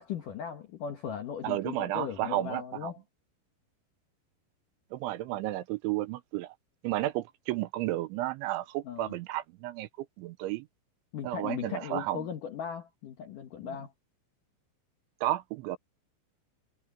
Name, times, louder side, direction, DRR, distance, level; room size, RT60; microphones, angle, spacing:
voice 1, 0.0-3.0 8.8-9.2 11.1-13.9, left 8 dB, 70° left, 2.0 m, -38 dB
voice 2, 1.4-2.9 4.9-6.6 6.8-10.7 11.2-12.3 13.6-13.8 15.2-15.8, right 15 dB, 80° right, 3.0 m, -32 dB
omnidirectional pair, 5.7 m